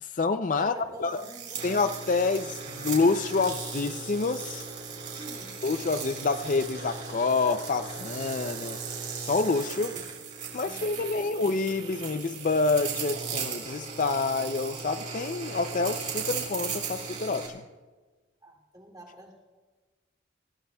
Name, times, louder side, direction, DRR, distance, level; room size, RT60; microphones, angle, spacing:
voice 1, 0.0-0.7 1.0-1.2 1.6-4.6 5.6-8.8 9.2-9.9 10.5-17.6, left 3 dB, 45° left, 0.4 m, -27 dB
voice 2, 0.6-1.7 5.1-5.5 9.8-10.1 10.6-11.4 18.4-19.3, right 1 dB, 20° right, 2.7 m, -47 dB
sound 1, 1.1-17.5, right 6 dB, 40° right, 4.1 m, -37 dB
28.5 x 16.0 x 2.3 m
head